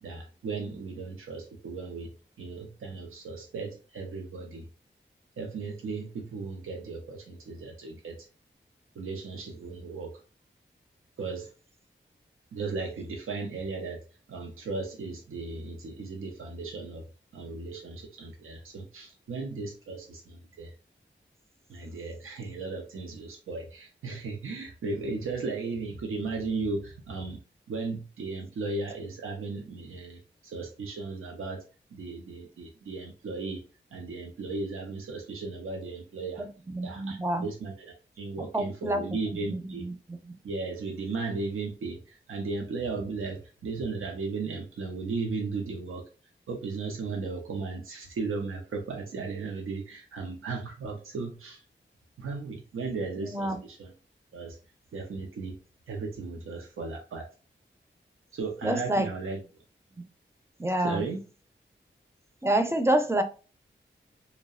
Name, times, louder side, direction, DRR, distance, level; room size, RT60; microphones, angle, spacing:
voice 1, 0.0-2.1 2.4-4.6 5.4-8.3 9.0-10.1 11.2-11.5 12.5-14.0 14.3-17.0 17.3-20.7 21.7-27.4 27.7-31.6 31.9-33.6 33.9-36.4 36.8-39.9 40.4-46.0 46.5-51.6 52.2-53.9 54.3-54.6 54.9-55.6 55.9-57.3 58.3-59.4 60.8-61.2, right 3 dB, 90° right, 0.5 m, -36 dB
voice 2, 36.4-37.5 38.5-39.0 39.5-39.9 53.2-53.6 58.6-59.1 60.6-61.0 62.4-63.2, right 1 dB, 15° right, 0.4 m, -27 dB
2.6 x 2.1 x 2.3 m
cardioid pair, 40°, 21 cm